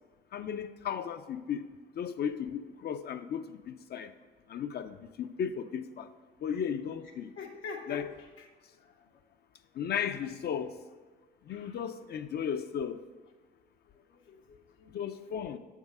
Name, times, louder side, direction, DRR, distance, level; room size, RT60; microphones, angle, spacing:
voice 1, 0.3-1.7 2.0-4.1 4.5-6.1 6.4-7.3 7.9-8.1 9.7-10.8 11.5-13.0 14.9-15.6, left 8 dB, 55° left, 0.4 m, -35 dB
voice 2, 7.4-8.1 8.4-8.5 8.8-8.9 11.5-11.8 14.1-14.9, left 5 dB, 80° left, 0.8 m, -44 dB
7.3 x 3.6 x 5.3 m
cardioid pair, 90°, 20 cm